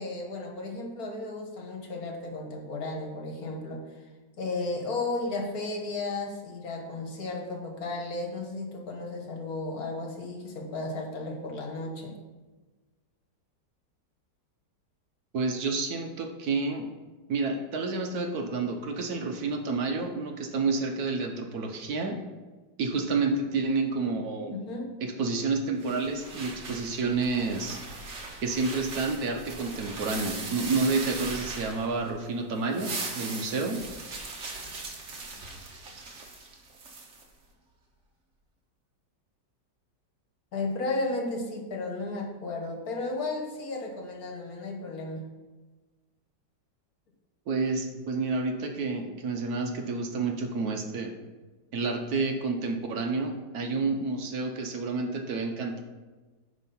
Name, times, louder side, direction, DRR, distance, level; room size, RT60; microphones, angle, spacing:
voice 1, 0.0-4.1 4.4-12.1 24.5-24.9 40.5-45.2, left 2 dB, 55° left, 1 dB, 1.6 m, -34 dB
voice 2, 15.3-16.8 17.3-22.2 22.8-24.5 25.0-27.8 28.4-33.8 47.5-51.1 51.7-55.8, right 3 dB, 65° right, 3 dB, 1.1 m, -29 dB
sound 1, 25.8-32.2 32.6-37.2, right 3 dB, 45° right, 1.3 m, -39 dB
9.9 x 3.6 x 5.4 m, 1.3 s
omnidirectional pair, 1.9 m